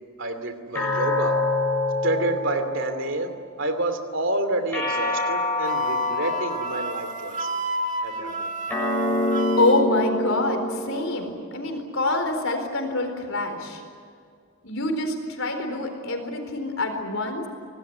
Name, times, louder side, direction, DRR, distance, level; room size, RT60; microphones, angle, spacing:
voice 1, 0.2-1.4 2.0-7.6 8.0-8.5, right 1 dB, 60° right, 8 dB, 2.7 m, -28 dB
sound 1, 0.7-3.3 4.7-7.3 8.7-11.3, left 2 dB, 10° left, 7.4 m, -26 dB
Wind instrument woodwind instrument, 5.7-9.9, right 1 dB, 35° right, 1.7 m, -30 dB
voice 2, 9.6-13.8 14.6-17.5, left 2 dB, 65° left, 4 dB, 4.3 m, -26 dB
26.5 x 18.5 x 9.8 m, 2.2 s
head